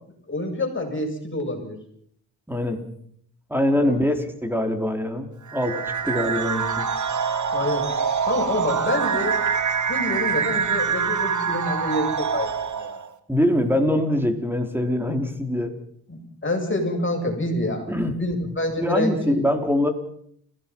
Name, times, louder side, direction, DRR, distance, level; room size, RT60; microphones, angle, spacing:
voice 1, 0.3-1.8 3.7-4.1 7.5-7.8 8.3-9.4 9.9-13.0 16.1-17.9 18.2-19.4, left 1 dB, 30° left, 2 dB, 7.9 m, -27 dB
voice 2, 2.5-2.8 3.5-6.9 13.3-15.7 17.9-19.9, left 1 dB, 5° right, 5 dB, 4.4 m, -24 dB
sound 1, 5.5-13.1, right 6 dB, 45° right, 1.8 m, -25 dB
30.0 x 17.0 x 5.7 m, 0.66 s
cardioid pair, 70°, 40 cm